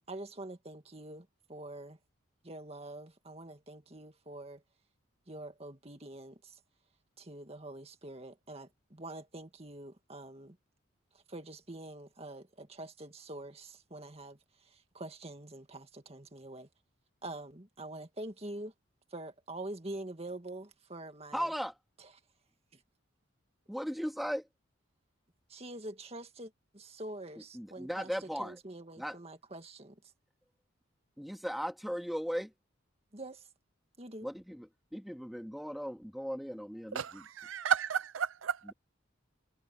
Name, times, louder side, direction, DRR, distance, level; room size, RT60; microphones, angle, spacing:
voice 1, 0.0-2.0 2.4-4.6 5.3-6.6 7.2-10.6 11.1-16.7 17.2-18.7 19.1-21.5 22.0-22.1 22.7-22.8 25.5-30.0 33.1-33.5 34.0-34.3, right 1 dB, 30° right, 2.0 m, -45 dB
voice 2, 21.3-21.7 23.7-24.5 27.5-28.6 29.0-29.2 31.2-32.5 34.2-34.7 34.9-37.2 38.6-38.7, equal, ahead, 2.0 m, -37 dB
voice 3, 36.9-38.6, right 8 dB, 70° right, 0.5 m, -32 dB
head